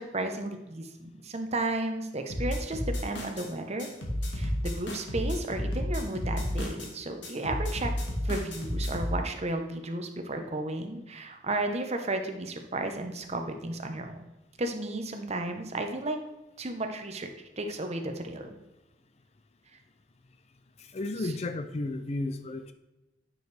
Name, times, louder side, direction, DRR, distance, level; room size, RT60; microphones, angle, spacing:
voice 1, 0.0-3.9 4.3-7.9 8.2-14.2 14.6-16.2 16.6-17.3 17.6-18.5, right 2 dB, 35° right, 5 dB, 0.8 m, -33 dB
sound 1, 2.3-3.5 3.8-6.9 7.2-9.2, equal, 70° left, 1.8 m, -31 dB
voice 2, 20.8-22.7, left 2 dB, 35° left, 10 dB, 0.4 m, -33 dB
9.6 x 6.3 x 3.3 m, 1.0 s
head